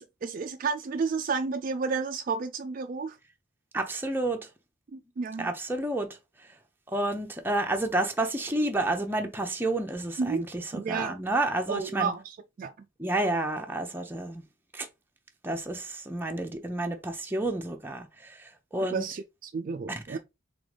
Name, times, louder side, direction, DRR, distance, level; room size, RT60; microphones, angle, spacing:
voice 1, 0.0-3.2 4.9-5.5 10.2-10.4 10.7-11.2 11.7-12.7 18.9-20.2, right 5 dB, 45° right, 0.3 m, -31 dB
voice 2, 3.7-4.4 5.4-6.1 6.9-12.1 13.0-14.4 14.7-14.9 15.4-19.0 20.1-20.2, right 2 dB, 10° right, 0.7 m, -30 dB
3.8 x 3.6 x 3.3 m
head